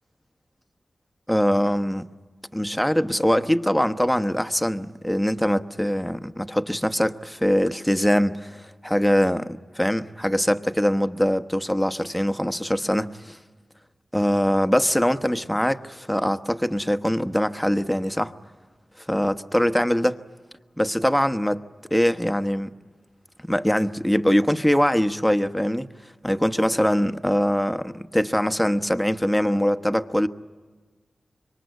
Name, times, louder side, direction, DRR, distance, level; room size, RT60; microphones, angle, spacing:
voice 1, 1.3-2.0 2.5-13.4 14.1-18.3 19.1-20.2 20.8-21.6 21.9-22.7 23.4-25.9 26.2-30.3, equal, 5° left, 1.1 m, -22 dB
26.0 x 23.5 x 9.3 m
cardioid pair, 65°, 0 cm